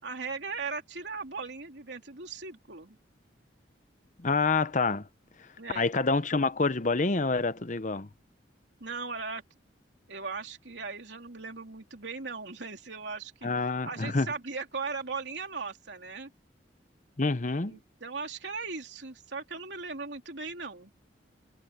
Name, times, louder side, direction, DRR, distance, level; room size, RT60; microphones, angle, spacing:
voice 1, 0.0-3.0 5.6-5.9 8.8-9.4 10.1-13.5 13.8-16.3 17.7-20.9, right 4 dB, 75° right, 3.2 m, -38 dB
voice 2, 4.2-5.0 5.7-8.1 13.4-14.3 17.2-17.8, left 3 dB, 45° left, 0.9 m, -27 dB
head